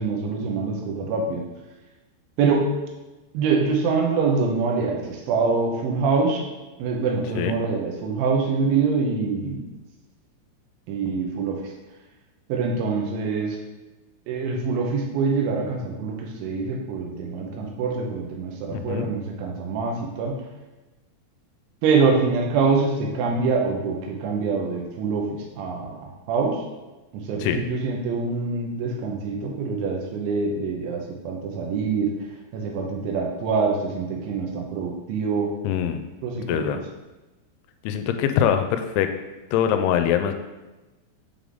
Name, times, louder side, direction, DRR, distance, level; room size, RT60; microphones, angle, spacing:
voice 1, 0.0-1.4 2.4-2.7 3.3-6.5 6.8-9.6 10.9-11.7 12.5-13.6 14.3-20.4 21.8-26.6 27.1-32.1 32.5-35.5 36.2-36.7, right 4 dB, 90° right, 0 dB, 3.3 m, -25 dB
voice 2, 18.7-19.1 27.4-27.6 35.6-36.0 36.5-36.8 37.8-39.1 39.5-40.4, left 9 dB, 85° left, 8 dB, 2.9 m, -23 dB
7.9 x 3.9 x 3.4 m, 1.1 s
omnidirectional pair, 5.3 m